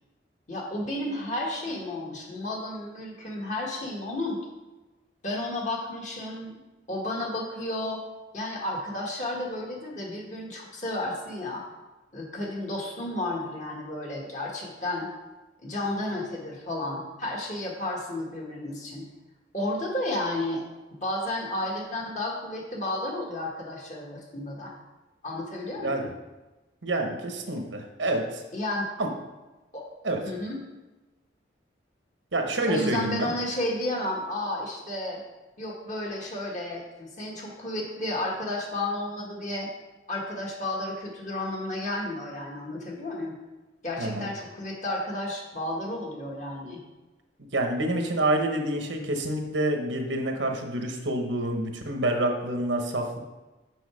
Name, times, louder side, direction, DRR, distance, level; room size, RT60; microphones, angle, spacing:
voice 1, 0.5-4.4 5.2-6.6 6.9-8.0 8.3-11.6 12.1-15.1 15.6-19.1 19.5-20.6 20.9-24.7 25.2-26.1 28.5-28.9 29.7-29.8 30.2-30.6 32.6-35.2 35.6-39.7 40.1-43.4 43.8-46.8, left 1 dB, 40° left, -1 dB, 1.4 m, -32 dB
voice 2, 26.8-28.4 29.0-29.1 30.0-30.2 32.3-33.3 44.0-44.3 47.5-53.2, right 1 dB, 85° right, 3 dB, 1.1 m, -27 dB
6.3 x 5.6 x 4.9 m, 1.1 s
head